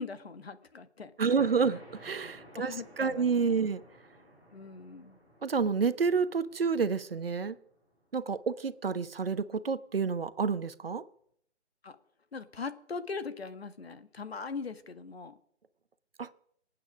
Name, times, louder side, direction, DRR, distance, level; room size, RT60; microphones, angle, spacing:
voice 1, 0.0-1.3 1.7-1.8 2.5-3.6 4.5-5.2 11.8-12.0 12.3-15.4, left 4 dB, 60° left, 10 dB, 1.8 m, -41 dB
voice 2, 1.2-3.8 5.4-7.5 8.1-11.0 16.2-16.3, right 5 dB, 55° right, 14 dB, 1.1 m, -29 dB
sound 1, 1.3-8.5, equal, 10° left, 5.7 m, -55 dB
25.5 x 8.9 x 6.3 m, 0.68 s
figure-of-eight pair, 155°, 34 cm